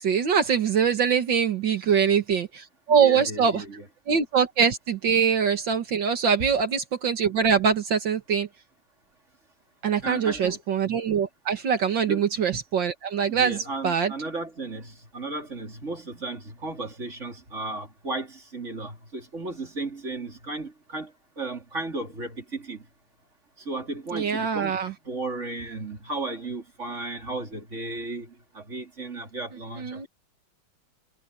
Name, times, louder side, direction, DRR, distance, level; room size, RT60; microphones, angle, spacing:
voice 1, 0.0-3.6 4.1-8.5 9.8-13.6 13.8-14.1 24.1-24.9 29.8-30.1, right 7 dB, 65° right, 2.2 m, -23 dB
voice 2, 2.9-3.9 6.4-6.5 10.0-10.6 12.0-12.3 13.3-22.9 23.6-30.1, right 2 dB, 35° right, 4.0 m, -35 dB
omnidirectional pair, 2.3 m